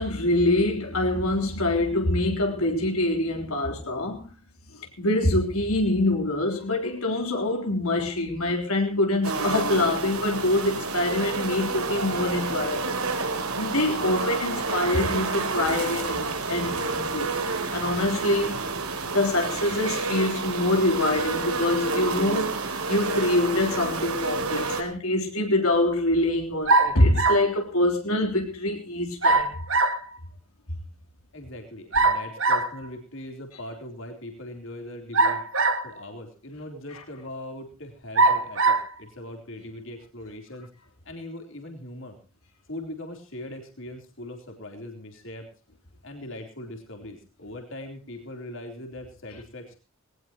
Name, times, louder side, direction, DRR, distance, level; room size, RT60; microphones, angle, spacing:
voice 1, 0.0-4.3 4.8-13.0 13.5-17.3 17.7-18.6 19.1-29.5 36.9-37.0, left 1 dB, 85° left, 3.6 m, -25 dB
sound 1, 9.2-24.8, right 3 dB, 90° right, 3.5 m, -29 dB
sound 2, 26.7-27.5 29.2-30.0 31.9-32.7 35.1-36.0 36.7-36.8 38.1-38.9, right 3 dB, 65° right, 1.7 m, -21 dB
voice 2, 31.3-35.4 35.8-40.7 41.1-42.2 42.7-45.5 46.0-49.8, left 1 dB, 60° left, 3.6 m, -40 dB
20.5 x 18.5 x 2.9 m
head